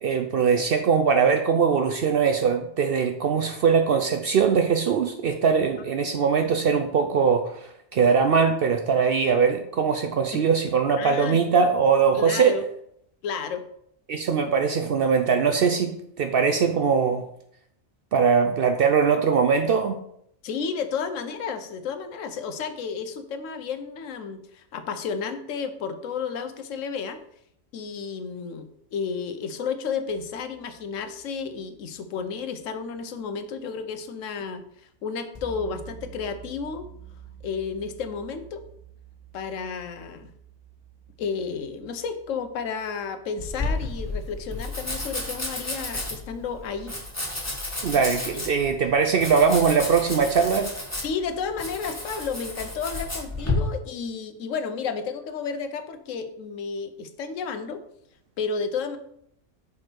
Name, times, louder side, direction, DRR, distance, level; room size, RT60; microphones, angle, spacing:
voice 1, 0.0-12.5 14.1-15.9 16.2-17.2 18.1-19.9 47.8-50.7, right 6 dB, 65° right, 6 dB, 0.6 m, -21 dB
voice 2, 11.0-11.4 12.1-12.6 13.2-13.6 20.4-27.2 27.7-36.9 37.4-38.6 39.3-40.3 41.2-47.0 48.0-48.1 48.3-48.5 51.0-57.8 58.4-59.0, left 5 dB, 70° left, 9 dB, 1.0 m, -32 dB
sound 1, 30.1-33.3 35.3-44.8, right 7 dB, 30° left, 1.2 m, -49 dB
Domestic sounds home sounds, 43.4-53.5, left 2 dB, 10° left, 1.4 m, -32 dB
6.1 x 4.7 x 4.4 m, 0.73 s
omnidirectional pair, 1.4 m